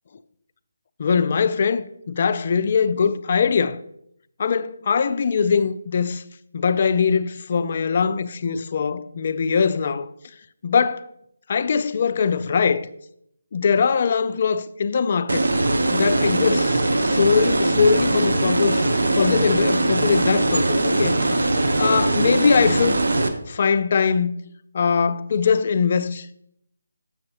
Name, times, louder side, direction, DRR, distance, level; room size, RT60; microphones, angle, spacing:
voice 1, 1.0-3.8 4.4-6.2 6.5-10.1 10.6-11.1 11.5-12.9 13.5-15.4 15.9-18.8 19.1-21.5 21.8-23.0 23.5-24.3 24.7-26.3, left 6 dB, 45° left, 0.3 m, -21 dB
sound 1, 15.3-23.3, right 2 dB, 70° right, 0.8 m, -21 dB
7.0 x 6.3 x 2.9 m
figure-of-eight pair, 160°, 0 cm